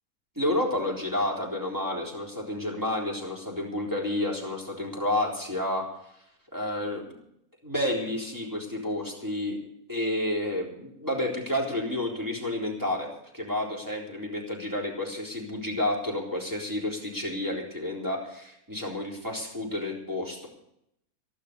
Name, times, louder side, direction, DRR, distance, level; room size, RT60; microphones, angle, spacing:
voice 1, 0.4-5.8 6.5-7.2 7.6-9.6 9.9-13.1 13.3-20.5, left 1 dB, 10° right, -2 dB, 3.8 m, -30 dB
14.0 x 12.0 x 6.8 m, 0.76 s
omnidirectional pair, 1.7 m